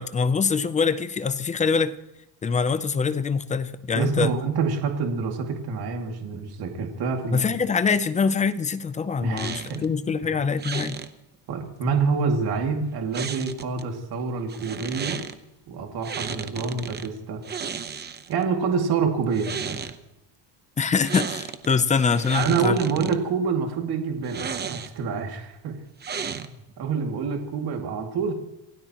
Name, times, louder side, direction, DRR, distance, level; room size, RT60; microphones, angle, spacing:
voice 1, 0.0-2.0 2.4-4.3 7.3-11.0 20.8-23.1, left 5 dB, 15° left, 12 dB, 0.4 m, -24 dB
voice 2, 3.9-7.6 9.2-9.8 11.5-15.2 15.7-17.4 18.3-19.9 22.3-25.7 26.3-28.3, right 5 dB, 50° right, 2 dB, 2.3 m, -27 dB
sound 1, 9.4-9.9 10.6-11.1 13.1-13.8 14.5-15.3 16.0-17.1 17.4-18.4 19.2-20.0 21.0-21.7 22.0-23.2 24.2-25.1 26.0-26.7, right 6 dB, 20° right, 0.7 m, -34 dB
27.5 x 16.5 x 3.0 m, 0.91 s
cardioid pair, 165°, 48 cm